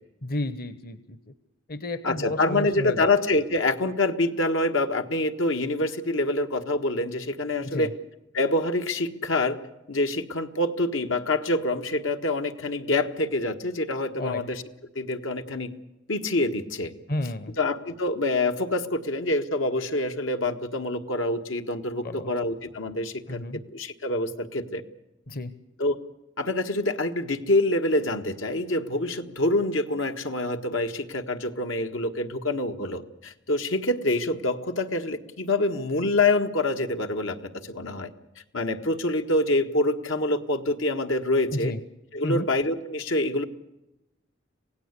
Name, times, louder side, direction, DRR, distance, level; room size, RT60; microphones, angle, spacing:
voice 1, 0.2-1.2 1.7-3.1 7.6-7.9 14.2-14.4 17.1-17.5 22.0-22.3 23.3-23.6 25.3-25.5 41.5-41.8 42.2-42.5, left 2 dB, 50° left, 13 dB, 1.0 m, -31 dB
voice 2, 2.0-7.9 8.3-9.6 9.9-14.6 14.9-15.7 16.1-16.9 17.6-23.4 23.7-24.8 25.8-26.0 26.4-38.1 38.5-41.7 42.1-43.4, left 2 dB, 85° left, 6 dB, 1.7 m, -26 dB
26.5 x 17.5 x 8.3 m, 0.94 s
head